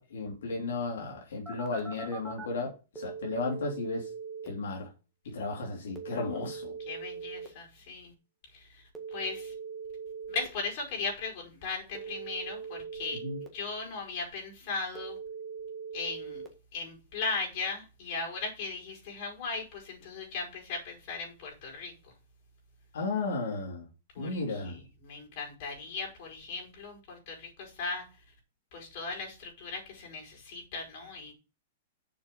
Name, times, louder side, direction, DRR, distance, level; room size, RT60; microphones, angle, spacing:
voice 1, 0.0-4.1 4.4-4.9 5.3-6.7 13.2-13.4 22.9-23.9 24.2-24.8, left 3 dB, 85° left, 3.0 m, -34 dB
Telephone, 1.5-2.5 3.0-4.5 6.0-7.5 8.9-10.5 11.9-13.5 15.0-16.5, right 5 dB, 5° right, 1.7 m, -41 dB
voice 2, 6.9-8.1 8.5-8.8 9.1-9.5 10.3-13.2 13.5-15.2 15.9-16.4 16.7-21.9 24.1-28.0 28.7-31.3, left 4 dB, 45° left, 5.0 m, -37 dB
7.1 x 5.5 x 6.7 m
hypercardioid pair, 160°, 0 cm